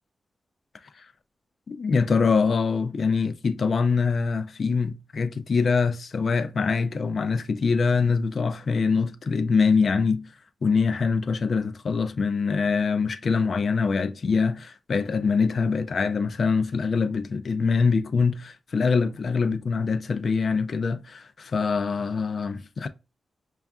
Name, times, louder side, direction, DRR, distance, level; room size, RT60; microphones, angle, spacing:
voice 1, 1.7-10.3 10.6-22.9, left 5 dB, 50° left, 0.4 m, -24 dB
5.2 x 2.3 x 2.3 m
wide cardioid pair, 155°, 0 cm